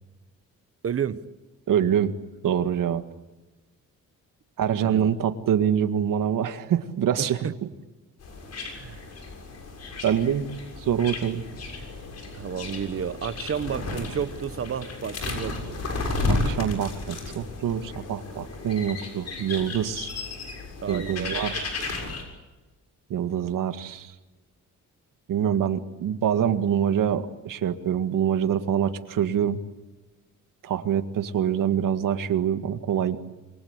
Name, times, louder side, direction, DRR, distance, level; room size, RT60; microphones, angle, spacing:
voice 1, 0.8-1.2 4.8-5.1 7.4-7.5 8.7-9.0 12.3-15.8 20.8-21.5 21.8-22.1, right 8 dB, 45° right, 1.2 m, -31 dB
voice 2, 1.7-2.1 2.4-3.0 4.6-7.5 10.0-10.5 10.8-11.4 16.3-20.1 20.9-21.7 23.1-24.1 25.3-29.6 30.6-33.2, right 9 dB, 80° right, 2.0 m, -25 dB
sound 1, 8.2-22.2, left 3 dB, 50° left, 6.9 m, -33 dB
28.0 x 24.0 x 8.3 m
wide cardioid pair, 160°, 32 cm